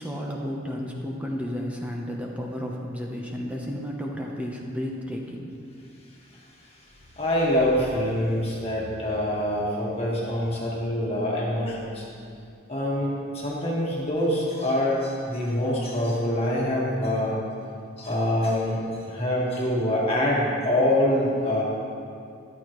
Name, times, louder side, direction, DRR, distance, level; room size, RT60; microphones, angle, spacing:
voice 1, 0.0-5.6, equal, 5° right, -1 dB, 0.8 m, -32 dB
voice 2, 7.2-12.0 12.7-13.1 13.3-17.3 18.0-21.6, left 1 dB, 30° left, -5 dB, 1.6 m, -25 dB
14.0 x 11.5 x 3.1 m, 2.4 s
head